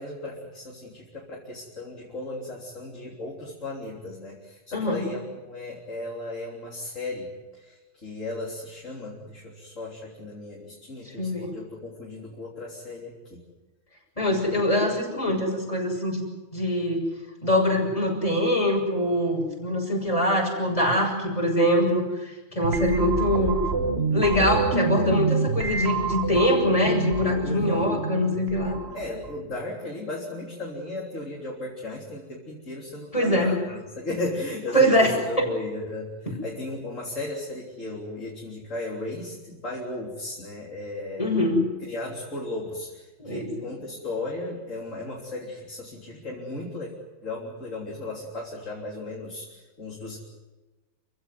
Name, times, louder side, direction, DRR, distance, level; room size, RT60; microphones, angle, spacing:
voice 1, 0.0-7.8 8.0-13.4 22.7-23.1 27.4-27.9 28.9-33.6 34.0-36.1 36.4-41.4 41.8-46.9 47.2-49.5 49.8-50.2, left 2 dB, 35° left, -3 dB, 3.9 m, -35 dB
voice 2, 4.7-5.1 11.2-11.5 14.2-16.3 16.5-17.1 17.4-23.6 24.1-28.8 33.1-33.6 34.7-35.5 36.3-36.4 41.2-41.7 43.2-43.6, left 1 dB, 15° left, 0 dB, 6.4 m, -23 dB
sound 1, 22.6-29.5, right 4 dB, 35° right, 1.6 m, -28 dB
28.5 x 16.5 x 9.5 m, 1.2 s
omnidirectional pair, 2.2 m